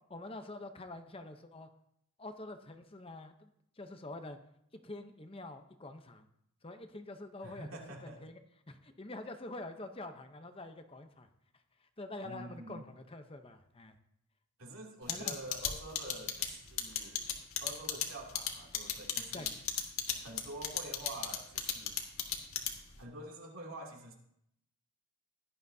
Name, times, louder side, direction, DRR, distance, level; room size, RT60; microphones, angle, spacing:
voice 1, 0.1-1.7 2.2-3.5 3.8-4.4 4.8-6.3 6.6-7.7 8.0-8.3 8.7-11.3 12.0-14.0 15.1-15.4 19.3-19.5, left 2 dB, 25° left, 7 dB, 0.7 m, -46 dB
voice 2, 7.4-8.3 12.2-12.8 14.6-17.3 17.6-19.6 20.2-22.0 23.0-24.1, right 1 dB, 70° right, -1 dB, 2.7 m, -47 dB
sound 1, 15.1-23.0, left 9 dB, 70° left, 1.6 m, -34 dB
17.0 x 12.0 x 2.7 m, 0.74 s
head